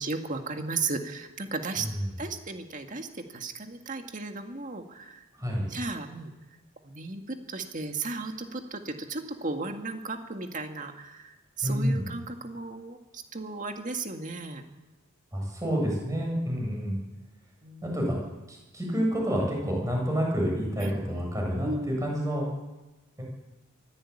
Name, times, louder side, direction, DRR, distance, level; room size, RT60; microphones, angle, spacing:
voice 1, 0.0-1.9 2.2-5.2 5.7-6.3 6.8-14.6 17.6-18.0 20.8-20.9 21.6-22.1, right 3 dB, 40° right, 4 dB, 2.1 m, -35 dB
voice 2, 11.6-12.1 15.3-17.0 17.8-18.2 18.5-22.4, equal, 15° right, -1 dB, 7.9 m, -28 dB
23.5 x 15.5 x 8.7 m, 1.1 s
head